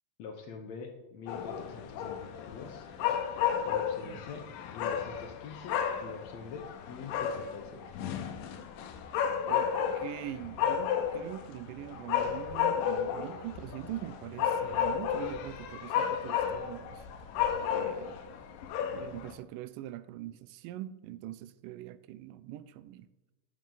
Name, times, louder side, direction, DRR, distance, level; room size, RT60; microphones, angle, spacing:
voice 1, 0.2-2.9 3.7-7.8, left 5 dB, 65° left, 1.9 m, -45 dB
sound 1, 1.3-19.3, left 8 dB, 90° left, 2.5 m, -33 dB
voice 2, 10.0-17.0 17.7-18.2 18.9-23.1, right 13 dB, 85° right, 2.2 m, -43 dB
sound 2, 13.6-13.7 14.4-15.7 16.5-17.7 18.5-18.8, right 1 dB, 30° left, 0.9 m, -55 dB
12.0 x 7.5 x 3.9 m
omnidirectional pair, 3.8 m